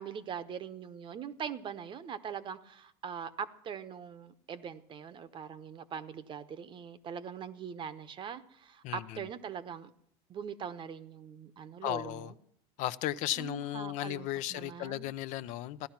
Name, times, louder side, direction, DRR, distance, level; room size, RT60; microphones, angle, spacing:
voice 1, 0.0-9.9 10.3-12.3 13.4-15.1, right 7 dB, 35° right, 1.0 m, -42 dB
voice 2, 8.8-9.2 11.8-12.3 12.8-15.9, left 14 dB, 60° left, 0.6 m, -35 dB
15.5 x 11.5 x 5.9 m
supercardioid pair, 120°, 14 cm